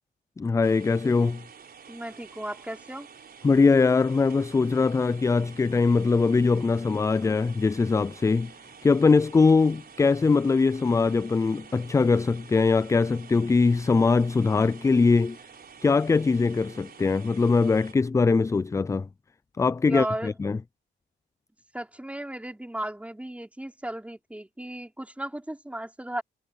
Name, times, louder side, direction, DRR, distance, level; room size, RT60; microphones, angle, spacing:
voice 1, 0.4-1.4 3.4-8.5 8.8-15.4 15.8-19.1 19.6-20.6, left 4 dB, 15° left, 0.3 m, -22 dB
sound 1, 0.6-17.9, right 6 dB, 50° right, 4.9 m, -49 dB
voice 2, 1.9-3.1 19.9-20.3 21.7-26.2, right 1 dB, 5° right, 5.4 m, -35 dB
cardioid pair, 90°, 20 cm